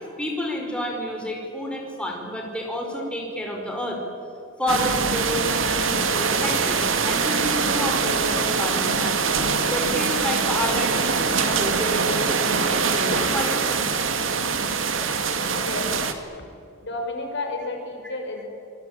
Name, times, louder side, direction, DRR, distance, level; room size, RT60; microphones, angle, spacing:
voice 1, 0.0-4.0 4.6-13.8, left 1 dB, 5° left, 0 dB, 4.9 m, -30 dB
sound 1, 4.7-16.1, right 5 dB, 70° right, 2.3 m, -23 dB
voice 2, 15.5-15.9 16.8-18.4, left 2 dB, 60° left, 2 dB, 5.7 m, -31 dB
26.0 x 21.5 x 9.0 m, 2.5 s
head